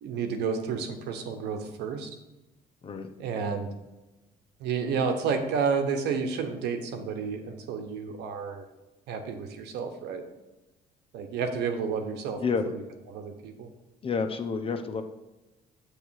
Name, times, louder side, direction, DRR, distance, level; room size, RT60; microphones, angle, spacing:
voice 1, 0.0-2.1 3.2-3.7 4.6-8.7 9.1-10.2 11.1-12.8 13.1-13.7, right 5 dB, 80° right, 6 dB, 1.1 m, -31 dB
voice 2, 14.0-15.0, left 5 dB, 35° left, 7 dB, 0.7 m, -29 dB
8.5 x 3.3 x 6.3 m, 1.0 s
cardioid pair, 110°, 17 cm